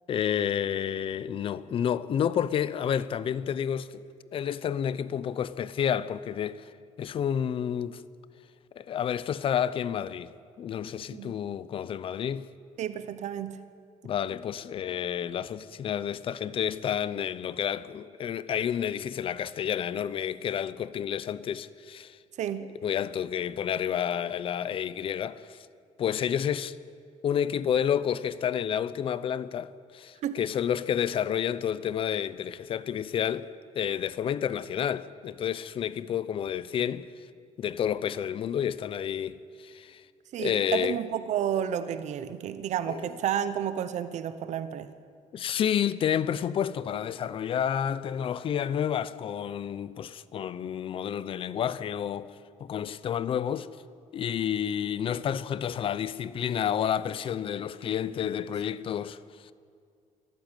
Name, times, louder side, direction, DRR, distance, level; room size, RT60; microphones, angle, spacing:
voice 1, 0.1-4.0 4.3-6.7 7.0-8.0 8.8-10.3 10.6-12.5 14.0-22.2 22.8-25.7 26.0-26.8 27.2-33.5 33.7-37.1 37.6-40.0 40.4-41.0 42.9-43.0 45.3-52.3 52.6-53.7 54.1-59.5, left 9 dB, 40° left, 0.6 m, -30 dB
voice 2, 12.8-13.6 22.4-22.7 30.2-30.4 40.3-44.9, right 9 dB, 60° right, 1.0 m, -31 dB
24.5 x 14.5 x 9.1 m
cardioid pair, 180°, 14 cm